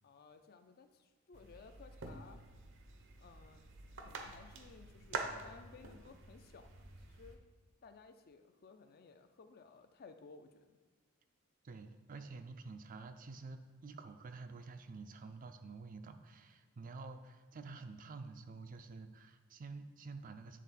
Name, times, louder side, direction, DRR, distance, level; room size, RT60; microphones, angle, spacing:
voice 1, 0.0-2.4 3.2-3.6 4.0-6.9 7.2-7.4 7.8-10.8, left 4 dB, 45° left, 8 dB, 0.4 m, -58 dB
sound 1, 1.3-7.4, right 3 dB, 60° right, 0.7 m, -47 dB
voice 2, 11.6-20.6, right 3 dB, 40° right, 8 dB, 0.4 m, -49 dB
9.2 x 3.7 x 4.1 m, 1.3 s
head